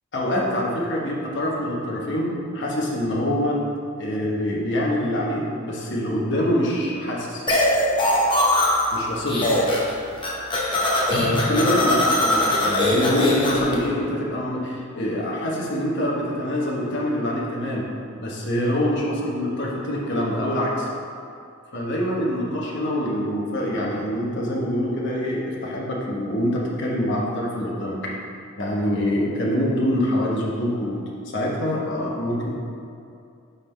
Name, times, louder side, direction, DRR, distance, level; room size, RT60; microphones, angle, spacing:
voice 1, 0.1-3.6 4.0-7.4 8.9-9.5 11.0-17.8 18.2-20.9 21.7-28.0 28.6-31.0 31.3-32.5, equal, 60° left, -3 dB, 1.1 m, -25 dB
sound 1, 7.5-9.0 9.3-9.9 10.2-13.7, left 1 dB, 25° left, 0.9 m, -21 dB
9.6 x 3.7 x 3.4 m, 2.5 s
head